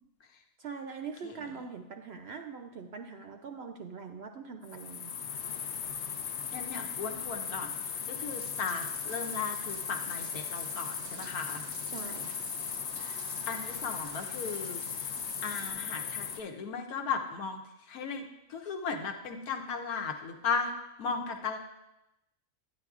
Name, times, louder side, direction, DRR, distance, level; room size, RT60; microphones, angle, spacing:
voice 1, 0.6-5.1 11.9-12.4, right 5 dB, 65° right, 5 dB, 0.6 m, -43 dB
sound 1, 4.6-16.4, left 7 dB, 60° left, 0.7 m, -38 dB
voice 2, 6.5-7.7 8.1-11.6 13.0-13.2 13.5-15.1 15.4-17.6 17.9-18.2 18.5-20.7 21.0-21.6, left 5 dB, 85° left, 4 dB, 1.3 m, -36 dB
Bathtub (filling or washing), 7.7-15.7, right 7 dB, 90° right, 1.2 m, -48 dB
10.5 x 9.3 x 2.4 m, 0.90 s
omnidirectional pair, 1.5 m